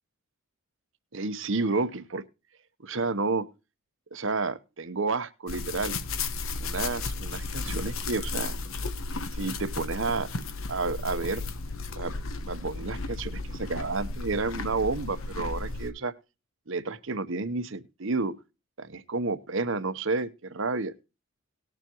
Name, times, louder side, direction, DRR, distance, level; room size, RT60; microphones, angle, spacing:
voice 1, 1.1-2.2 2.8-3.5 4.1-6.0 6.6-8.6 9.3-10.3 10.7-11.4 12.0-12.1 12.4-16.1 16.7-18.3 18.8-20.9, right 3 dB, 60° right, 12 dB, 0.9 m, -30 dB
sound 1, 5.5-15.9, left 3 dB, 70° left, 1.0 m, -34 dB
19.0 x 7.0 x 2.9 m, 0.30 s
head